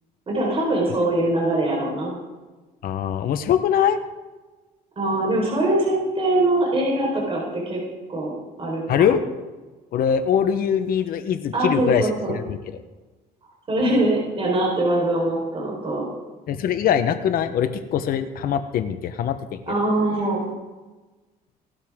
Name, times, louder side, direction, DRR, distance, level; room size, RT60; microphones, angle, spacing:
voice 1, 0.3-2.1 5.0-7.8 8.1-8.3 8.6-9.2 11.5-12.3 13.7-16.1 19.6-20.4, right 1 dB, 35° right, -2 dB, 4.2 m, -22 dB
voice 2, 2.8-4.0 8.9-9.2 9.9-12.1 12.3-12.6 16.5-19.6, left 8 dB, 60° left, 8 dB, 1.0 m, -22 dB
17.0 x 12.5 x 3.7 m, 1.2 s
cardioid pair, 110°, 17 cm